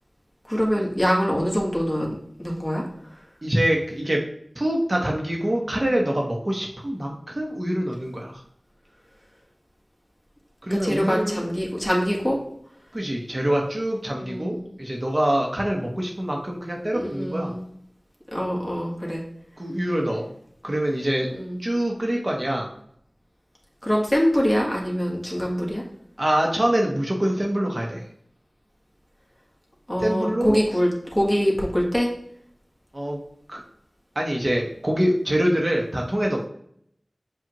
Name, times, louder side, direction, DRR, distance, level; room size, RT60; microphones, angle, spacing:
voice 1, 0.5-2.8 10.7-12.4 14.2-14.7 16.9-17.6 18.3-19.2 21.3-21.6 23.8-25.8 29.9-32.1, equal, 15° left, -3 dB, 1.4 m, -24 dB
voice 2, 3.4-4.2 4.5-8.4 10.6-11.4 12.9-17.5 19.6-20.3 20.6-21.3 21.6-22.7 26.2-28.0 30.0-30.6 32.9-33.2 33.5-33.6 34.2-36.5, right 1 dB, 45° right, 0 dB, 0.9 m, -25 dB
7.3 x 2.5 x 2.9 m, 0.67 s
wide cardioid pair, 45°, 0 cm